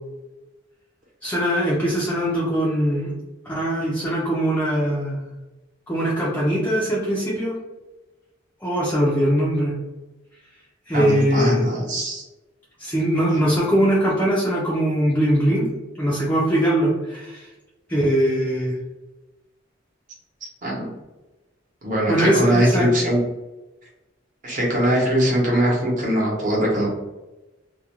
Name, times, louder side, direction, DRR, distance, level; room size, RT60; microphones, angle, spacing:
voice 1, 1.2-3.1 3.5-5.2 5.9-7.5 8.6-9.8 10.9-11.6 12.8-15.7 16.0-17.5 17.9-18.8 22.1-22.9, equal, 10° left, -7 dB, 0.4 m, -21 dB
voice 2, 10.9-12.2 20.6-20.9 21.8-23.2 24.4-26.9, right 1 dB, 45° right, -4 dB, 0.9 m, -21 dB
2.4 x 2.2 x 2.9 m, 1.1 s
head